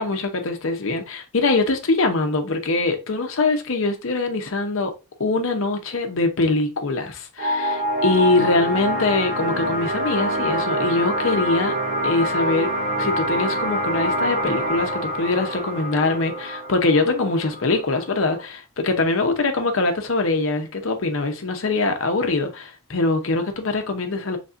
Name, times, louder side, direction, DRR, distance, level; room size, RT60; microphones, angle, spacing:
voice 1, 0.0-4.9 5.2-11.7 12.0-12.7 13.0-24.4, left 3 dB, 60° left, 0.7 m, -23 dB
sound 1, 7.4-18.4, right 1 dB, 35° right, 0.9 m, -25 dB
4.1 x 3.3 x 2.4 m
head